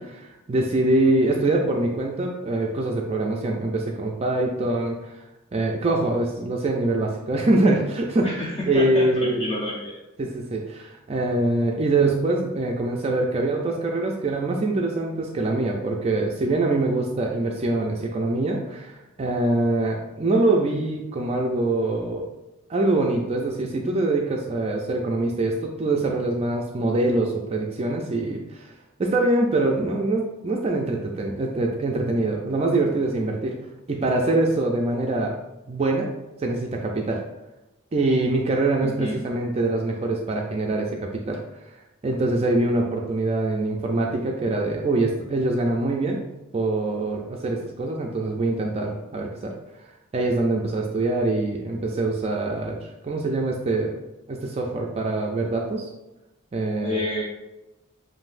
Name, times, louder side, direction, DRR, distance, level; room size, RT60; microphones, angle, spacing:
voice 1, 0.0-5.2 5.5-9.4 10.2-22.2 22.7-28.7 29.0-33.5 33.9-35.3 35.7-36.1 36.4-37.2 37.9-41.4 42.0-46.2 46.5-49.5 50.1-54.0 54.3-55.9 56.5-57.0, right 2 dB, 30° right, 0 dB, 0.4 m, -24 dB
voice 2, 8.2-10.0 38.8-39.2 56.8-57.2, left 1 dB, 30° left, -4 dB, 0.6 m, -29 dB
7.5 x 2.6 x 2.5 m, 0.98 s
head